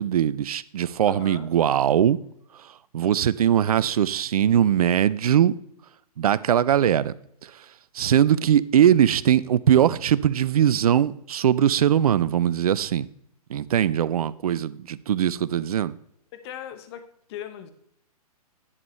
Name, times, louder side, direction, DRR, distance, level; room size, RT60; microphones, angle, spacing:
voice 1, 0.0-2.2 2.9-5.6 6.2-7.1 8.0-13.1 13.5-15.9, right 10 dB, 65° right, 0.5 m, -21 dB
voice 2, 1.1-1.5 16.3-17.7, left 10 dB, 40° left, 1.0 m, -39 dB
11.0 x 7.1 x 3.2 m
figure-of-eight pair, 120°, 20 cm